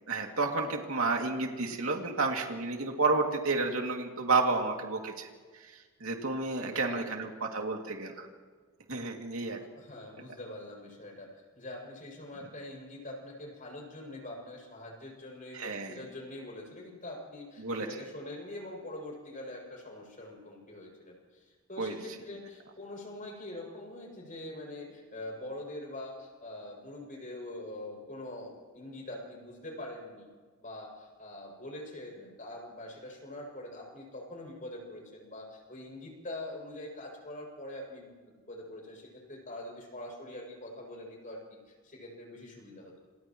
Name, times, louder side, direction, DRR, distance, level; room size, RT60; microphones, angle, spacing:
voice 1, 0.1-5.3 5.5-5.7 6.0-8.3 8.9-9.6 15.5-16.0 17.6-17.9 21.8-21.9, right 3 dB, 80° right, 1 dB, 2.6 m, -31 dB
voice 2, 6.5-7.2 9.6-11.3 11.6-30.3 30.6-42.9, left 1 dB, 40° left, -1 dB, 7.0 m, -44 dB
28.5 x 28.5 x 3.1 m, 1.5 s
head